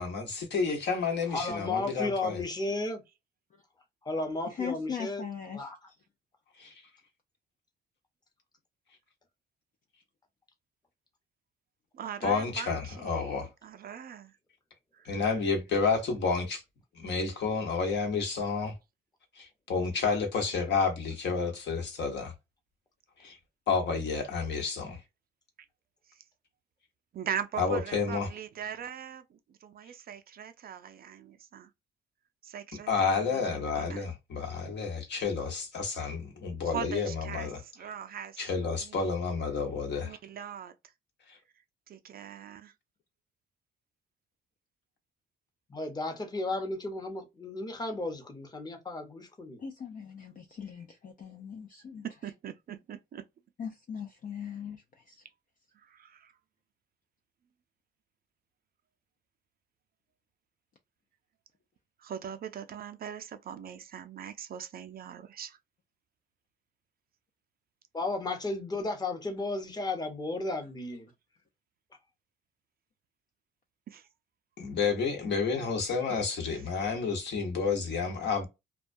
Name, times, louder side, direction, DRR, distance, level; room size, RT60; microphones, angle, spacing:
voice 1, 0.0-2.4 6.6-6.7 12.2-13.5 15.0-16.6 17.0-18.7 19.4-22.3 23.2-23.4 23.7-25.0 27.6-28.3 32.9-37.6 38.4-40.2 74.6-78.5, left 5 dB, 60° left, 1.0 m, -30 dB
voice 2, 1.3-3.0 4.0-5.2 5.5-5.9 45.7-49.6 67.9-71.1, left 2 dB, 20° left, 0.8 m, -34 dB
voice 3, 4.5-5.7 49.6-52.0 53.6-55.2, left 7 dB, 45° left, 0.4 m, -40 dB
voice 4, 11.9-14.3 15.0-15.5 27.1-31.7 32.4-34.1 36.6-39.2 40.0-40.7 41.9-42.7 52.0-53.2 55.8-56.3 62.0-65.6 73.9-74.1 76.5-76.6, right 8 dB, 50° right, 0.4 m, -41 dB
2.2 x 2.2 x 2.5 m
cardioid pair, 90°, 20 cm